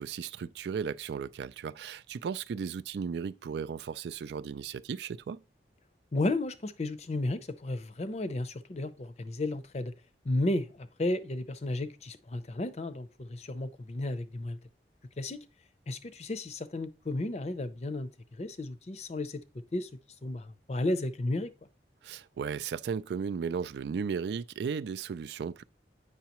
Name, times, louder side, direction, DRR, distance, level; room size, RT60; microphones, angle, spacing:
voice 1, 0.0-5.4 22.0-25.6, right 6 dB, 70° right, 0.3 m, -35 dB
voice 2, 6.1-9.9 10.2-14.6 15.2-15.4 15.9-18.1 18.4-19.4 19.7-19.9 20.2-21.5, left 2 dB, 35° left, 0.5 m, -33 dB
8.2 x 5.6 x 2.9 m
head